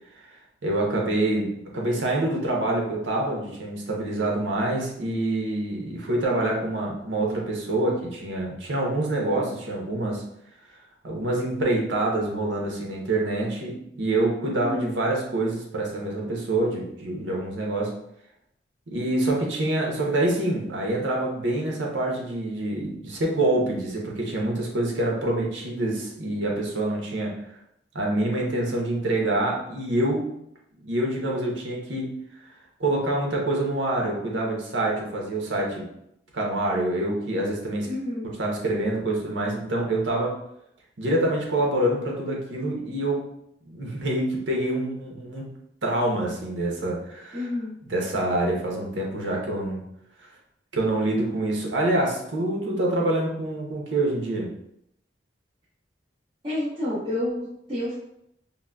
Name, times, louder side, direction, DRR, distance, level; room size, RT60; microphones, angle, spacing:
voice 1, 0.6-10.2 11.0-17.9 18.9-27.4 27.9-30.3 30.8-32.1 32.8-35.8 36.3-37.9 38.4-40.4 41.0-43.2 43.7-45.5 45.8-47.5 47.9-49.8 50.7-54.5, right 1 dB, 85° right, -1 dB, 0.8 m, -26 dB
voice 2, 37.9-38.3 47.3-47.8 56.4-57.9, left 1 dB, 25° right, -14 dB, 1.0 m, -29 dB
3.7 x 2.1 x 2.2 m, 0.76 s
head